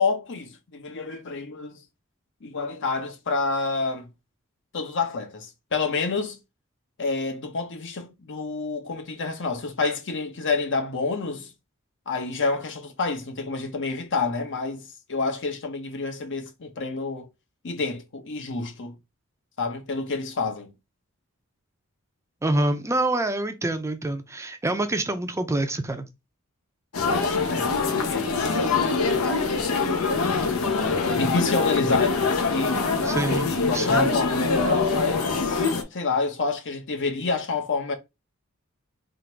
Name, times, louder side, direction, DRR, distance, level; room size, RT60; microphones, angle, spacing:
voice 1, 0.0-1.8 2.4-4.1 4.7-6.4 7.0-11.5 12.1-17.3 17.6-18.9 19.6-20.7 27.5-28.3 30.2-32.8 33.4-35.6 35.9-37.9, left 4 dB, 60° left, 0.9 m, -28 dB
voice 2, 22.4-26.1 33.0-34.1, right 2 dB, 15° right, 0.5 m, -26 dB
sound 1, 26.9-35.8, left 4 dB, 85° left, 0.9 m, -24 dB
3.8 x 2.5 x 4.4 m
head